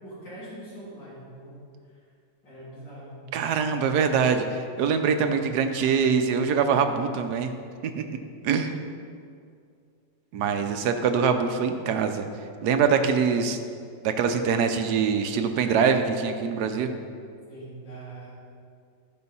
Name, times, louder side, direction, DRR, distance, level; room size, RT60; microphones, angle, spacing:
voice 1, 0.0-1.7 2.4-3.3 17.5-18.3, right 1 dB, 75° left, -10 dB, 3.8 m, -42 dB
voice 2, 3.3-7.5 7.9-8.2 8.4-8.7 10.3-12.2 12.6-13.6 14.0-16.9, right 6 dB, 65° right, 7 dB, 1.2 m, -24 dB
14.5 x 5.2 x 5.5 m, 2.3 s
omnidirectional pair, 2.0 m